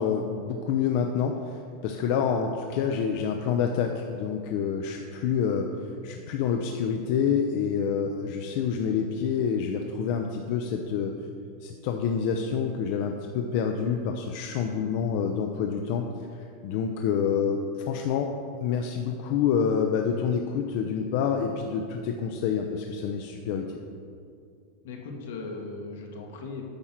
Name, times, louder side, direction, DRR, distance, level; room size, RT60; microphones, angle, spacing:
voice 1, 0.0-5.7 6.0-11.1 11.6-16.1 16.6-17.6 17.9-18.3 18.6-23.8, left 7 dB, 55° left, 3 dB, 0.5 m, -27 dB
voice 2, 24.8-26.6, left 3 dB, 80° left, 1 dB, 1.3 m, -38 dB
8.6 x 4.4 x 5.8 m, 2.3 s
supercardioid pair, 150°, 0 cm